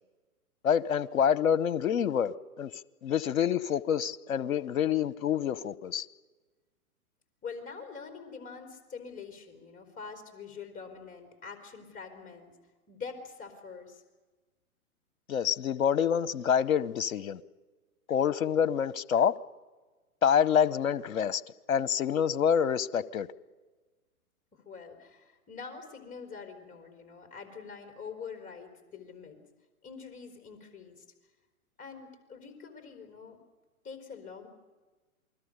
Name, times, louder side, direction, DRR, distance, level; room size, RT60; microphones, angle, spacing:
voice 1, 0.6-2.7 3.0-6.0 15.3-17.4 18.1-19.3 20.2-21.4 21.7-23.3, left 8 dB, 70° left, 1.0 m, -27 dB
voice 2, 7.4-12.5 12.9-14.0 24.5-29.4 29.8-31.0 31.8-33.4 33.8-34.5, left 5 dB, 20° left, 4.2 m, -45 dB
28.0 x 21.0 x 6.7 m
figure-of-eight pair, 120°, 43 cm